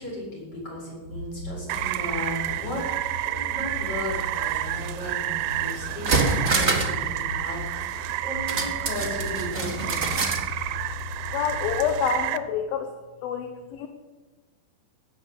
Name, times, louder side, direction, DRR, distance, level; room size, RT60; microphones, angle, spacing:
voice 1, 0.0-2.9 3.2-10.2, left 1 dB, 25° left, -5 dB, 5.8 m, -35 dB
sound 1, 1.0-12.0, left 2 dB, 45° left, 3.6 m, -38 dB
Rain, 1.7-12.4, right 14 dB, 90° right, 2.6 m, -30 dB
sound 2, 5.4-5.5 5.9-7.0 7.3-7.4 8.5-10.4 10.8-10.9, right 3 dB, 60° right, 0.7 m, -26 dB
voice 2, 11.3-12.9 13.2-13.9, left 8 dB, 75° left, 6 dB, 2.6 m, -27 dB
17.0 x 7.9 x 8.4 m, 1.3 s
omnidirectional pair, 4.4 m